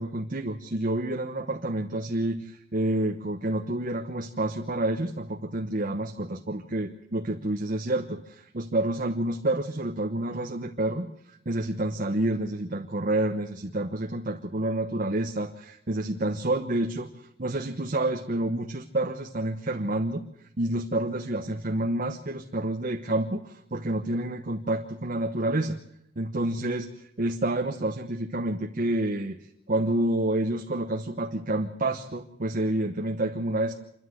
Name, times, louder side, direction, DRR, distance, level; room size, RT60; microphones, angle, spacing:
voice 1, 0.0-17.1 17.4-20.2 20.6-25.8 26.2-29.4 29.7-33.8, right 1 dB, 45° right, 4 dB, 1.1 m, -29 dB
27.0 x 13.0 x 7.9 m, 0.78 s
head